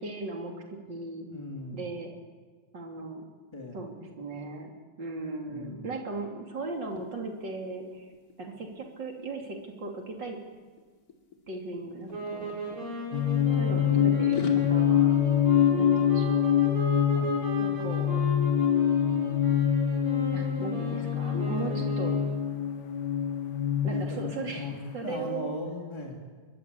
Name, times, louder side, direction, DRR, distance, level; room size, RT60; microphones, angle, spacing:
voice 1, 0.0-1.3 1.7-2.1 2.7-3.3 3.7-4.7 5.0-8.1 8.4-10.4 11.5-12.6 13.5-15.2 15.7-16.5 17.8-18.2 20.3-22.2 23.8-25.5, right 3 dB, 55° right, 2 dB, 3.7 m, -37 dB
voice 2, 1.3-1.9 3.5-3.8 5.5-5.9 17.1-17.8 21.5-21.9 23.9-26.2, left 1 dB, 10° left, 1 dB, 3.1 m, -39 dB
sound 1, 6.8-7.1 7.4-7.7 8.0-9.8 10.5-10.8 11.1-12.9 13.4-14.5, left 5 dB, 45° left, 2.9 m, -41 dB
sound 2, 12.1-22.5, right 1 dB, 85° right, 8.0 m, -36 dB
sound 3, 13.1-25.1, left 9 dB, 60° left, 1.4 m, -25 dB
23.5 x 22.0 x 8.7 m, 1.5 s
omnidirectional pair, 2.3 m